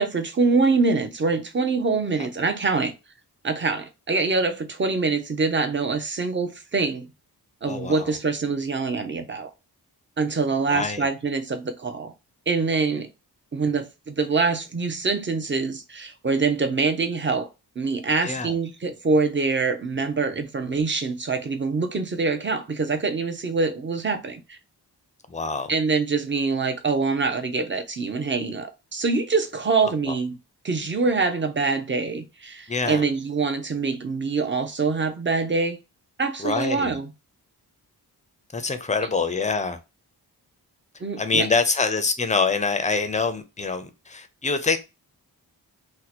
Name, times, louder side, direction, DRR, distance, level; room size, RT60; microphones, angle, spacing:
voice 1, 0.0-2.9 3.4-7.1 7.6-9.5 10.2-12.1 12.5-13.1 13.5-17.5 17.8-24.6 25.7-30.3 30.6-35.8 36.2-37.1 41.0-41.5, right 4 dB, 30° right, 0.6 m, -24 dB
voice 2, 7.7-8.1 10.7-11.1 18.2-18.6 25.3-25.7 30.1-30.2 32.7-33.0 36.4-37.0 38.5-39.8 41.2-44.8, left 4 dB, 20° left, 0.4 m, -25 dB
2.8 x 2.1 x 4.1 m
wide cardioid pair, 100°, 40 cm